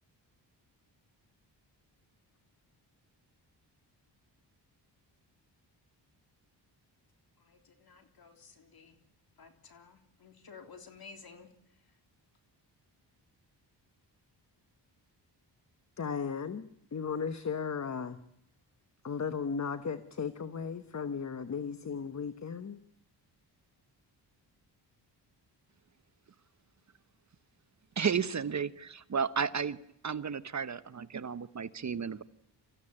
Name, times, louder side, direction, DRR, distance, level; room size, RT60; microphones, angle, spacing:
voice 1, 7.4-9.0 9.4-12.0, left 5 dB, 55° left, 6 dB, 3.5 m, -54 dB
voice 2, 16.0-18.2 19.0-22.8, left 6 dB, 40° left, 11 dB, 1.2 m, -36 dB
voice 3, 28.0-29.8 30.0-32.2, right 6 dB, 40° right, 14 dB, 0.9 m, -33 dB
26.5 x 15.0 x 9.9 m, 0.79 s
cardioid pair, 85°, 43 cm